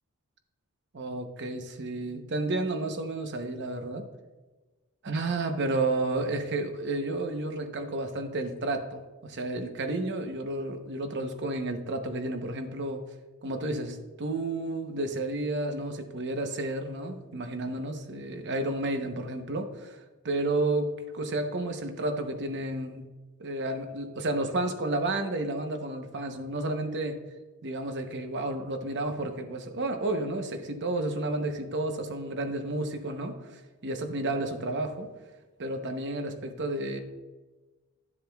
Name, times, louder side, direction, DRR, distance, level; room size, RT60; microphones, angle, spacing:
voice 1, 0.9-4.1 5.0-13.0 13.4-23.1 23.4-27.2 27.6-35.1 35.6-37.0, right 2 dB, 55° right, 6 dB, 0.9 m, -31 dB
12.0 x 7.3 x 2.3 m, 1.2 s
head